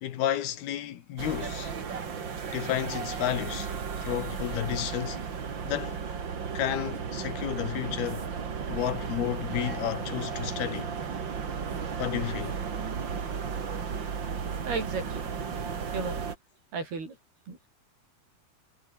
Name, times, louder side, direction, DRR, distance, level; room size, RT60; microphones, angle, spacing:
voice 1, 0.0-1.7 2.5-3.7 4.0-5.3 5.7-6.0 6.6-8.3 8.7-10.9 12.0-12.6, left 11 dB, 80° left, 3.7 m, -31 dB
sound 1, 1.2-16.4, right 6 dB, 35° right, 2.2 m, -34 dB
voice 2, 14.7-15.3 15.9-16.2 16.7-17.2 17.5-17.6, right 4 dB, 80° right, 9.2 m, -33 dB
omnidirectional pair, 4.5 m